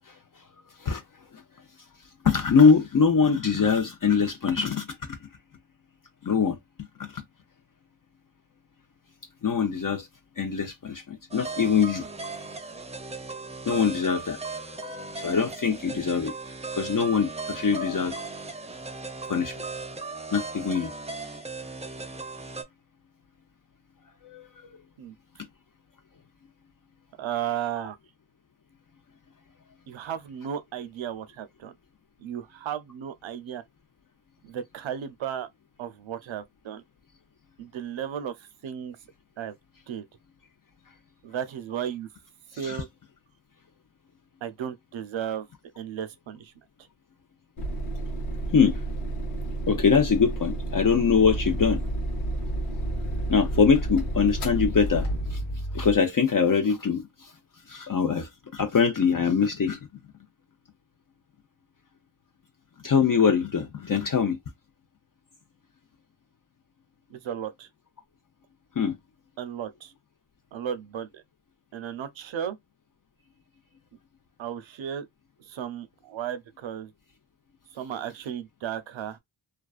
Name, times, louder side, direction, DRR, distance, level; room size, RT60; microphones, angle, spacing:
voice 1, 2.2-5.3 6.2-6.6 7.0-7.2 9.4-10.1 10.4-12.1 13.7-16.3 16.7-18.2 19.3-19.6 20.3-20.9 24.2-24.5 42.6-42.8 48.5-48.8 49.7-51.8 53.3-55.4 55.7-57.3 57.7-59.8 62.8-64.4 68.8-69.0, left 6 dB, 40° left, 0.6 m, -23 dB
sound 1, 11.3-22.6, right 3 dB, 15° right, 0.4 m, -37 dB
voice 2, 27.2-28.0 29.9-31.7 32.2-33.6 34.4-35.5 35.8-36.8 37.6-39.0 39.4-39.5 39.9-40.1 41.2-42.1 42.5-42.9 44.4-45.5 45.8-46.5 67.1-67.7 69.4-69.9 70.5-71.2 71.7-72.6 74.4-75.1 75.4-76.9 77.7-79.2, right 9 dB, 65° right, 0.6 m, -34 dB
sound 2, 47.6-55.6, right 2 dB, 85° left, 1.0 m, -32 dB
Growling, 51.1-56.0, right 1 dB, 65° left, 1.2 m, -33 dB
2.4 x 2.3 x 2.3 m
cardioid pair, 45°, 50 cm